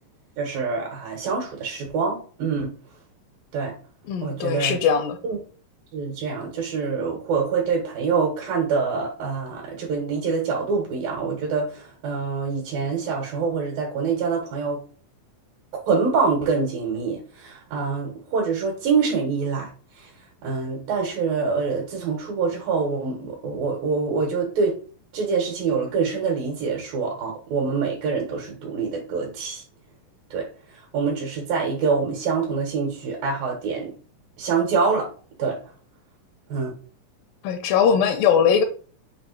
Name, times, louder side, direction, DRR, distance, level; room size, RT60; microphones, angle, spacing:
voice 1, 0.4-2.7 3.5-3.7 4.2-4.8 5.2-5.4 5.9-14.8 15.9-19.7 20.4-24.8 25.1-29.6 30.3-30.5 30.9-33.9 34.4-35.1 35.4-35.6 36.5-36.7, right 5 dB, 85° right, 3.5 m, -25 dB
voice 2, 4.0-5.2 37.4-38.6, left 7 dB, 85° left, 2.5 m, -20 dB
7.1 x 2.9 x 5.3 m
omnidirectional pair, 3.9 m